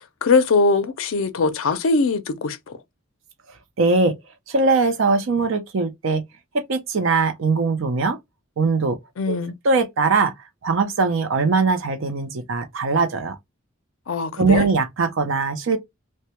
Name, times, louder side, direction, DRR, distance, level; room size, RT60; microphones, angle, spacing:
voice 1, 0.0-2.8 9.2-9.5 14.1-14.7, left 4 dB, 70° left, 0.4 m, -21 dB
voice 2, 3.8-4.1 4.5-6.2 6.7-8.2 8.6-9.0 9.3-9.4 9.6-10.3 10.6-13.4 14.4-15.8, right 4 dB, 65° right, 0.5 m, -21 dB
2.1 x 2.1 x 2.8 m
head